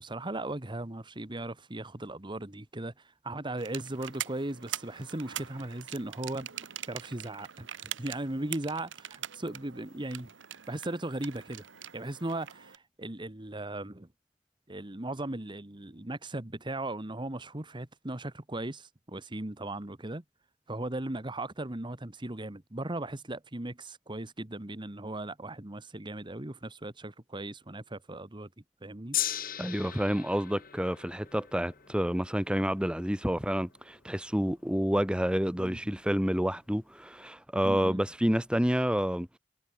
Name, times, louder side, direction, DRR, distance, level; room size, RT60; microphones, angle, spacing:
voice 1, 0.0-6.5 6.9-10.3 10.7-11.6 11.9-14.1 14.7-20.2 20.7-28.5 28.8-29.2 35.6-35.8 37.6-38.0, right 1 dB, 25° right, 1.4 m, -37 dB
sound 1, 3.6-12.8, right 10 dB, 70° right, 1.7 m, -43 dB
Gong, 29.1-35.5 36.3-36.4, left 11 dB, 50° left, 3.2 m, -39 dB
voice 2, 29.6-39.4, equal, 5° right, 1.5 m, -29 dB
head